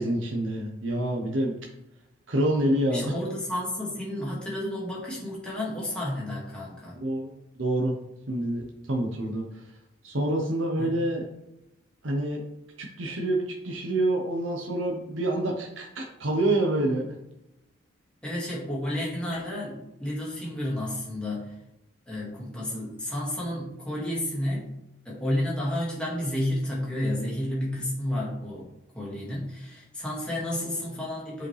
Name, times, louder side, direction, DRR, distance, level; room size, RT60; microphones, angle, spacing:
voice 1, 0.0-1.6 2.3-3.1 7.0-7.9 8.3-8.6 8.9-9.5 10.0-11.2 12.0-12.4 12.8-17.1, right 1 dB, 75° right, 1 dB, 1.0 m, -27 dB
voice 2, 2.9-7.0 10.8-10.9 18.2-21.5 22.1-24.7 25.1-31.5, left 1 dB, 5° left, -6 dB, 2.0 m, -31 dB
7.4 x 5.1 x 3.3 m, 0.89 s
head